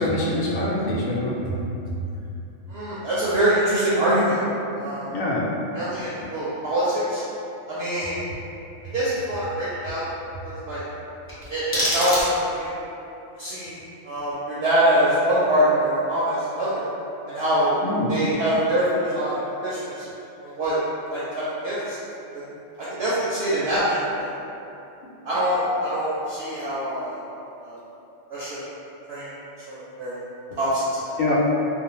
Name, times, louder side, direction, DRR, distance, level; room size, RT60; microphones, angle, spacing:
voice 1, 0.0-1.6 5.1-5.5 17.8-18.1 31.2-31.3, left 1 dB, 85° left, -6 dB, 1.0 m, -24 dB
voice 2, 2.7-4.4 4.7-5.1 5.7-7.2 7.7-8.2 8.9-10.0 10.4-10.8 11.5-12.7 13.4-13.8 14.0-16.9 17.3-17.8 18.1-20.0 20.4-20.8 21.1-22.0 22.3-22.4 23.0-24.3 25.2-27.2 27.6-27.8 28.3-28.6 29.1-29.3 29.7-30.2 30.6-31.2, right 1 dB, 65° right, -10 dB, 0.7 m, -24 dB
sound 1, 11.2-12.7, equal, 15° left, 0.4 m, -27 dB
2.5 x 2.1 x 2.9 m, 2.8 s
omnidirectional pair, 1.3 m